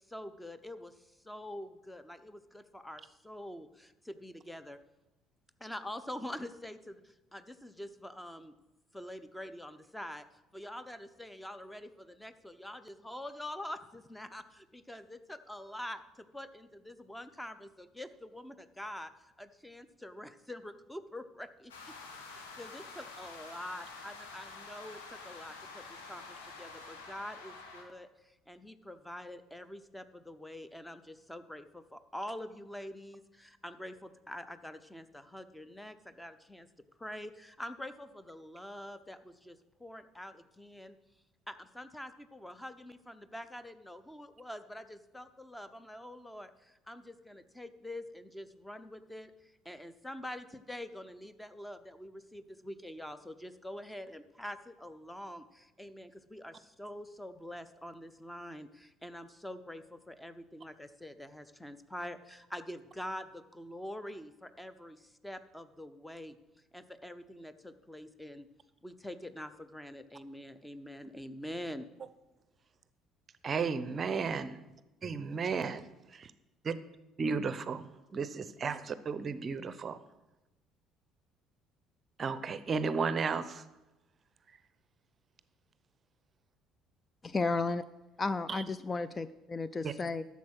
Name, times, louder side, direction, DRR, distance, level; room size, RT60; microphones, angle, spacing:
voice 1, 0.0-4.8 5.6-8.5 8.9-10.2 10.5-21.7 22.2-36.7 37.0-41.0 41.5-66.4 66.7-68.5 68.8-71.9, left 1 dB, 5° left, 12 dB, 0.8 m, -45 dB
sound 1, 21.7-27.8, left 4 dB, 75° left, 1.5 m, -48 dB
voice 2, 73.4-74.6 75.0-75.8 76.7-76.8 77.2-80.0 82.2-83.6 89.8-89.9, right 5 dB, 35° right, 14 dB, 0.6 m, -33 dB
voice 3, 87.2-87.8 88.2-90.2, left 3 dB, 25° left, 15 dB, 0.4 m, -33 dB
11.5 x 7.2 x 6.1 m, 1.0 s
figure-of-eight pair, 55°, 0 cm